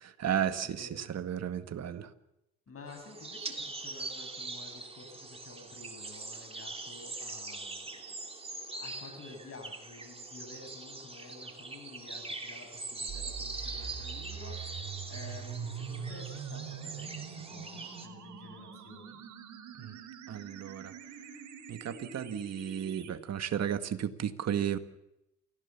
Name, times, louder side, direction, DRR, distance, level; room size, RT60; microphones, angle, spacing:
voice 1, 0.0-2.1 19.8-19.9 20.3-20.9 21.7-24.8, right 9 dB, 60° right, 9 dB, 1.9 m, -34 dB
voice 2, 0.6-1.3 2.7-8.2 8.7-14.6 15.1-19.2, left 4 dB, 50° left, 6 dB, 7.5 m, -51 dB
sound 1, 2.9-18.1, right 3 dB, 20° right, 3.1 m, -42 dB
sound 2, 13.1-23.1, right 7 dB, 75° right, 4.0 m, -43 dB
28.5 x 16.5 x 7.2 m, 0.86 s
cardioid pair, 90°, 30 cm